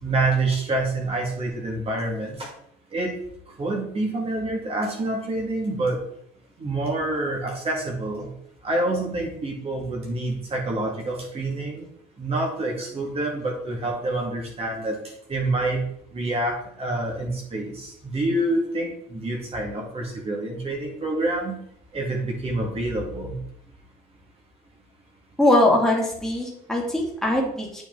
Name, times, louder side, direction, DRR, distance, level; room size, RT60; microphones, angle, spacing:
voice 1, 0.0-2.5 2.9-3.2 3.6-6.0 6.6-8.3 8.6-11.9 12.2-15.8 16.1-21.6 21.9-23.4, right 2 dB, 35° right, -1 dB, 2.1 m, -27 dB
voice 2, 25.4-27.8, left 1 dB, 5° left, -3 dB, 2.4 m, -21 dB
9.0 x 5.1 x 3.9 m, 0.70 s
cardioid pair, 110°, 17 cm